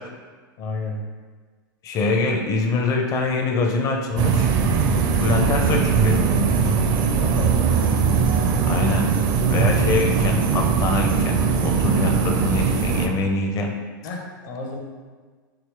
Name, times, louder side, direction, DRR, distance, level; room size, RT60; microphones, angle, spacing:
voice 1, 0.6-1.0 7.1-7.7 14.0-14.8, left 3 dB, 60° left, 1 dB, 0.9 m, -32 dB
voice 2, 1.8-4.5 5.2-6.2 8.6-9.1 9.5-13.8, left 3 dB, 30° left, 2 dB, 0.6 m, -24 dB
sound 1, 4.2-13.1, right 5 dB, 40° right, 0.5 m, -20 dB
4.9 x 3.0 x 3.3 m, 1.4 s
hypercardioid pair, 110°, 11 cm